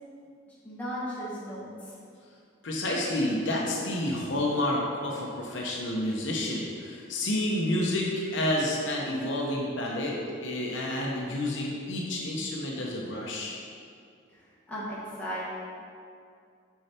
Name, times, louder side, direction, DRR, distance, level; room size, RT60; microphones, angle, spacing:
voice 1, 0.5-1.9 14.3-15.4, equal, 10° left, -9 dB, 1.6 m, -37 dB
voice 2, 2.6-13.6, left 1 dB, 70° left, -2 dB, 0.9 m, -29 dB
6.6 x 4.8 x 4.3 m, 2.3 s
head